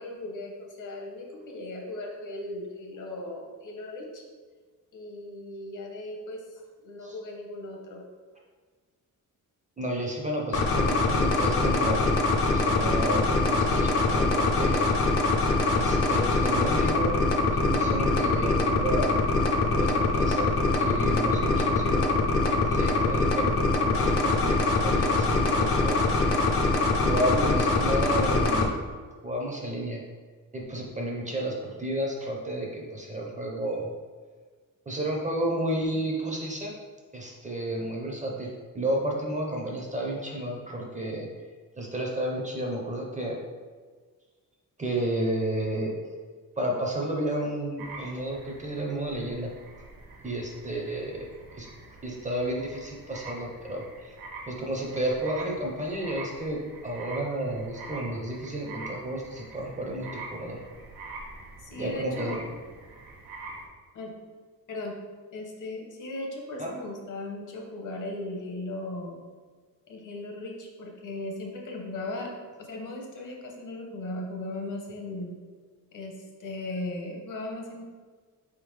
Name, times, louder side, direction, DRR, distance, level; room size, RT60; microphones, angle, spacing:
voice 1, 0.0-4.2 4.9-6.4 6.8-8.0 61.6-62.4 63.9-64.1 64.7-65.0 65.3-69.2 69.9-72.3 72.6-75.4 75.9-76.1 76.4-77.8, left 2 dB, 60° left, 1 dB, 0.8 m, -37 dB
voice 2, 9.8-12.1 12.5-14.9 15.7-17.2 17.5-19.1 19.5-20.5 20.8-22.1 22.4-23.6 23.8-26.7 27.0-28.8 29.2-30.0 30.5-33.9 34.9-36.7 37.1-41.3 41.8-43.4 44.8-45.9 46.6-49.5 50.2-51.2 51.5-51.7 52.0-54.1 54.5-60.6 61.8-62.4 66.6-66.7, right 1 dB, 20° right, -1 dB, 0.5 m, -32 dB
sound 1, 10.5-28.7, left 3 dB, 40° left, 0.4 m, -23 dB
sound 2, 47.8-63.7, right 3 dB, 80° right, 1.0 m, -44 dB
4.6 x 3.5 x 3.1 m, 1.5 s
wide cardioid pair, 180°, 35 cm